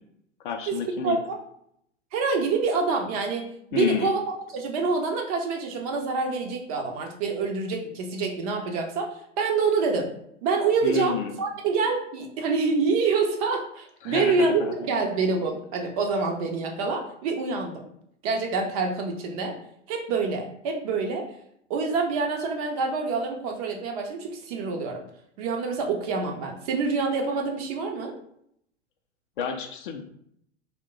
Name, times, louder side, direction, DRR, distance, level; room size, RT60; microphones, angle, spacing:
voice 1, 0.4-1.2 3.7-4.1 10.8-11.4 14.0-14.7 29.4-30.0, left 7 dB, 45° left, 5 dB, 0.4 m, -30 dB
voice 2, 1.0-1.4 2.1-3.5 3.7-4.2 4.5-9.1 9.4-10.1 10.4-17.8 18.2-19.5 19.9-21.3 21.7-25.0 25.4-28.1, right 4 dB, 30° right, 2 dB, 0.4 m, -26 dB
2.9 x 2.1 x 3.5 m, 0.71 s
figure-of-eight pair, 95°, 37 cm